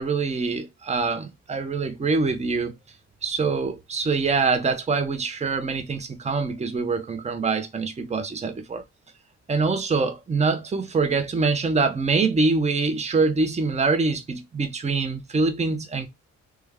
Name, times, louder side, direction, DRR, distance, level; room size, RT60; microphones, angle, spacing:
voice 1, 0.0-2.7 3.2-8.8 9.5-16.1, right 4 dB, 25° right, 0.7 m, -24 dB
3.3 x 2.2 x 3.4 m
cardioid pair, 85°, 29 cm